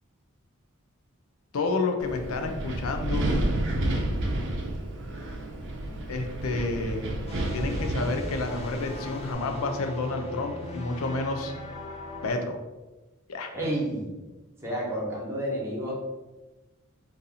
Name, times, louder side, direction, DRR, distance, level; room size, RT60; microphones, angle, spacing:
voice 1, 1.5-3.3 6.1-7.1 7.5-11.5 12.2-12.6 13.3-13.5, left 3 dB, 85° left, 5 dB, 0.4 m, -30 dB
Wind, 2.0-9.3, right 1 dB, 60° right, 0.5 m, -30 dB
sound 1, 7.3-12.3, left 1 dB, 30° left, 0.4 m, -40 dB
voice 2, 13.5-14.2 14.6-15.9, right 1 dB, 15° right, -5 dB, 0.9 m, -30 dB
2.6 x 2.6 x 4.0 m, 1.1 s
head